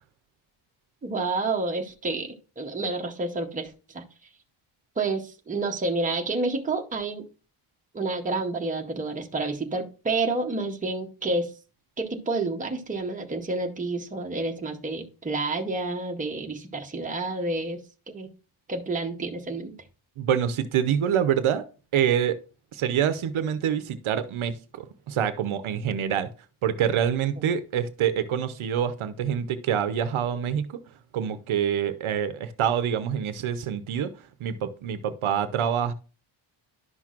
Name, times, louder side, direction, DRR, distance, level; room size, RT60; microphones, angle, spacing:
voice 1, 1.0-4.0 5.0-7.2 7.9-11.5 12.0-17.8 18.1-18.3 18.7-19.7, right 3 dB, 15° right, 0.8 m, -29 dB
voice 2, 20.2-21.6 21.9-22.4 22.7-26.3 26.6-30.8 31.1-35.9, right 9 dB, 75° right, 0.7 m, -26 dB
11.0 x 5.9 x 2.4 m
wide cardioid pair, 160°, 50 cm